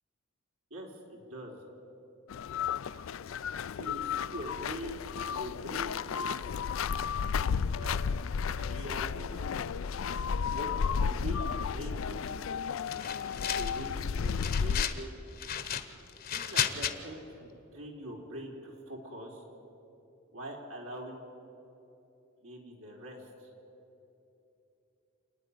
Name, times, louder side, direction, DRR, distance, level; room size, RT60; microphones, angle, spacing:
voice 1, 0.7-1.6 3.7-6.4 7.7-8.2 8.5-9.5 10.4-12.4 13.3-15.1 15.7-15.8 16.3-19.4 20.3-21.3 22.4-23.5, equal, 85° right, 0 dB, 3.7 m, -43 dB
sound 1, 2.3-14.9, left 6 dB, 70° left, 0.4 m, -33 dB
sound 2, 12.9-13.9 14.2-15.0 15.4-16.9, left 9 dB, 45° left, 1.0 m, -34 dB
27.5 x 9.7 x 10.0 m, 3.0 s
head